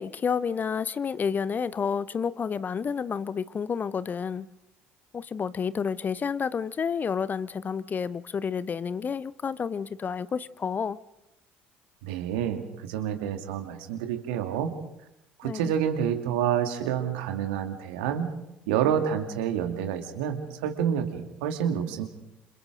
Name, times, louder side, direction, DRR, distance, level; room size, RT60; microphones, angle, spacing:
voice 1, 0.0-4.5 5.1-11.0 15.4-15.6, left 6 dB, 30° left, 0.7 m, -30 dB
voice 2, 12.0-14.7 15.4-18.3 18.7-22.0, right 9 dB, 65° right, 2.4 m, -28 dB
28.5 x 27.5 x 3.9 m
figure-of-eight pair, 55°, 6 cm